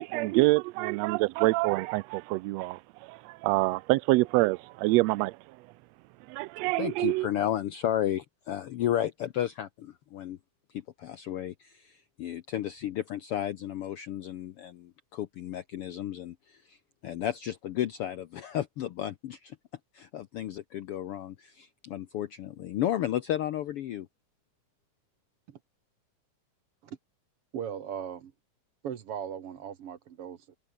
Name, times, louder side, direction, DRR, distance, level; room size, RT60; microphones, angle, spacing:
voice 1, 0.0-2.8 3.4-5.3 6.3-7.3, right 21 dB, 85° right, 1.5 m, -25 dB
voice 2, 6.8-10.4 10.7-16.8 17.0-19.6 19.9-24.1, left 11 dB, 70° left, 1.4 m, -33 dB
voice 3, 27.5-28.3 28.8-30.6, right 8 dB, 55° right, 2.1 m, -38 dB
omnidirectional pair, 3.5 m